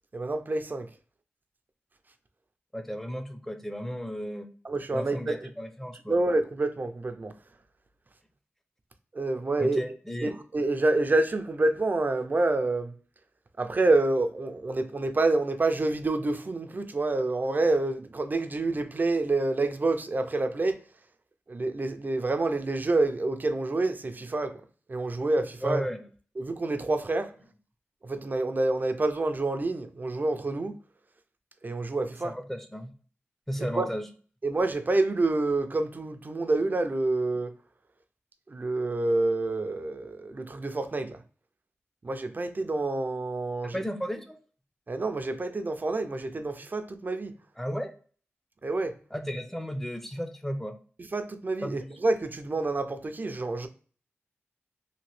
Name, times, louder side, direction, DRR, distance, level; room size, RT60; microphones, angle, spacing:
voice 1, 0.1-0.9 4.6-5.5 6.1-7.3 9.1-9.8 10.2-12.9 13.6-20.8 21.5-24.6 24.9-25.8 26.4-27.3 28.0-30.7 31.6-32.3 33.7-33.9 34.4-37.5 38.5-41.2 42.0-43.7 44.9-47.3 48.6-48.9 51.1-53.7, right 2 dB, 45° right, 0.4 m, -27 dB
voice 2, 2.7-4.5 4.9-6.2 9.6-10.3 25.6-26.1 32.2-32.9 33.5-34.1 43.6-44.4 47.6-47.9 49.1-50.8 51.6-51.9, equal, 5° left, 0.5 m, -34 dB
2.9 x 2.7 x 3.1 m
wide cardioid pair, 75°, 5 cm